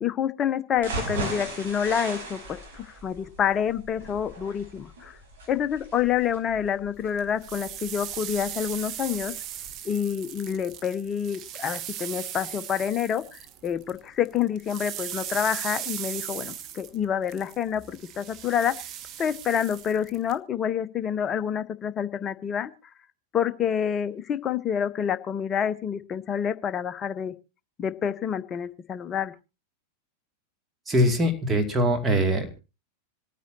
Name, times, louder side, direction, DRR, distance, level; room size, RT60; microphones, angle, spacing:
voice 1, 0.0-5.1 5.5-9.3 9.8-18.7 19.2-22.7 23.3-27.3 27.8-29.3, left 8 dB, 25° left, 13 dB, 0.8 m, -28 dB
sound 1, 0.8-8.7 9.1-9.2 9.6-9.7, right 3 dB, 60° right, 5.0 m, -37 dB
sound 2, 7.2-14.0 14.3-20.4, right 11 dB, 35° right, 1.0 m, -38 dB
voice 2, 30.9-32.6, equal, 15° right, 5 dB, 2.4 m, -22 dB
26.5 x 9.3 x 2.8 m, 0.28 s
figure-of-eight pair, 90°, 0 cm